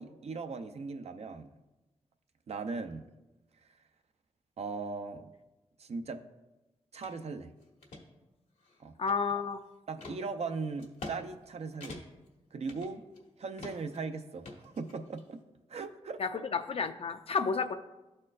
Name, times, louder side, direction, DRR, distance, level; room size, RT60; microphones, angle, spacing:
voice 1, 0.0-1.5 2.5-3.0 4.6-5.3 5.8-6.2 6.9-7.5 8.8-8.9 9.9-12.0 12.5-13.0 13.4-15.4 15.7-16.4, right 4 dB, 65° right, 7 dB, 0.5 m, -38 dB
sound 1, 7.0-7.2 7.6-8.0 8.6-9.5 10.0-10.2 10.8-11.2 11.4-11.5 11.8-12.3 12.7-13.3 13.6-14.0 14.4-15.2, left 2 dB, 85° left, 1.4 m, -45 dB
voice 2, 9.0-9.6 16.2-17.8, left 5 dB, 55° left, 9 dB, 0.5 m, -31 dB
12.5 x 4.3 x 2.5 m, 1.0 s
cardioid pair, 65°, 12 cm